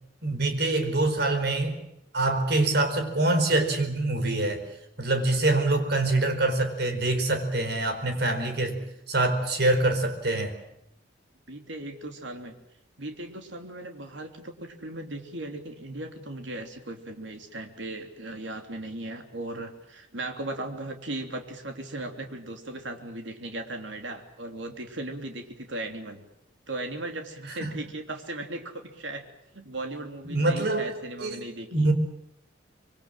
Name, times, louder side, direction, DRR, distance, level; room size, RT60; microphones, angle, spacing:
voice 1, 0.2-1.8 2.1-4.6 5.0-8.8 9.1-10.6 27.6-27.7 30.2-30.9 31.2-31.4 31.7-31.9, right 2 dB, 55° right, 7 dB, 4.4 m, -25 dB
voice 2, 11.5-12.5 13.0-26.2 26.7-29.2 29.5-31.9, right 2 dB, 75° right, 5 dB, 3.1 m, -37 dB
25.5 x 23.5 x 7.6 m, 0.79 s
head